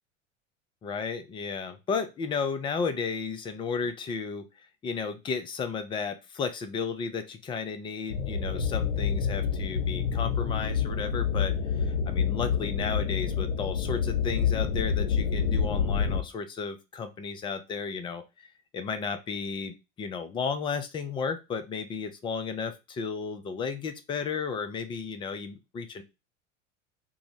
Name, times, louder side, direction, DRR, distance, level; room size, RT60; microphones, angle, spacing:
voice 1, 0.8-4.5 4.8-18.2 18.7-26.0, left 5 dB, 15° left, 9 dB, 0.3 m, -33 dB
sound 1, 8.1-16.2, left 7 dB, 65° left, 0.8 m, -28 dB
4.6 x 2.0 x 2.7 m, 0.26 s
hypercardioid pair, 85°, 39 cm